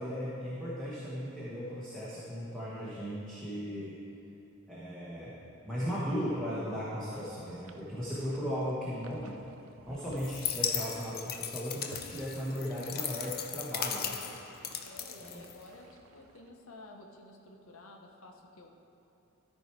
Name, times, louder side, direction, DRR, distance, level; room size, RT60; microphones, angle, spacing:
voice 1, 0.0-3.9 4.7-5.3 5.6-9.4 9.9-14.2 15.2-15.4, equal, 5° left, -10 dB, 1.2 m, -36 dB
sound 1, 7.1-16.5, right 3 dB, 75° right, 0.5 m, -56 dB
sound 2, 10.2-15.9, left 8 dB, 45° left, 0.5 m, -37 dB
voice 2, 14.8-18.7, left 2 dB, 80° left, 1 dB, 0.9 m, -52 dB
13.5 x 4.6 x 4.5 m, 2.8 s
head